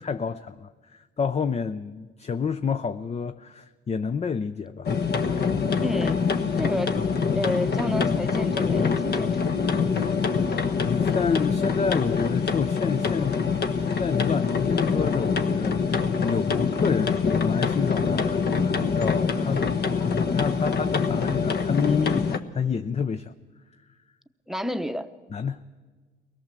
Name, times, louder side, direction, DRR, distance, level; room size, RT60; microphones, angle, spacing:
voice 1, 0.0-4.9 9.9-10.2 10.8-13.4 13.9-23.3 25.3-25.6, left 6 dB, 35° left, 0.6 m, -29 dB
sound 1, 4.9-22.4, left 5 dB, 55° left, 1.3 m, -25 dB
voice 2, 5.8-6.3 6.6-7.0 7.3-9.4 11.2-11.5 24.5-25.1, left 1 dB, ahead, 0.9 m, -30 dB
23.5 x 17.5 x 7.5 m
cardioid pair, 90°, 20 cm